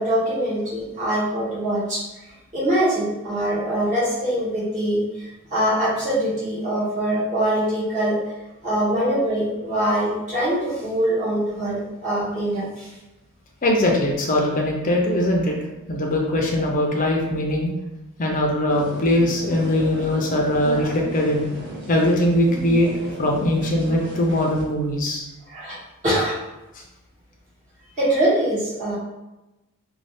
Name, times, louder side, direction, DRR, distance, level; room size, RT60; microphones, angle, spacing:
voice 1, 0.0-2.0 2.5-8.2 8.6-12.9 25.5-25.8 26.0-26.4 28.0-29.0, right 1 dB, 35° right, -10 dB, 1.1 m, -23 dB
voice 2, 13.6-15.6 15.9-17.7 18.2-21.5 21.9-22.9 23.2-25.2, left 1 dB, 35° left, 0 dB, 0.5 m, -21 dB
sound 1, 18.7-24.6, right 1 dB, 50° right, 0.6 m, -35 dB
2.6 x 2.2 x 3.3 m, 1.0 s
head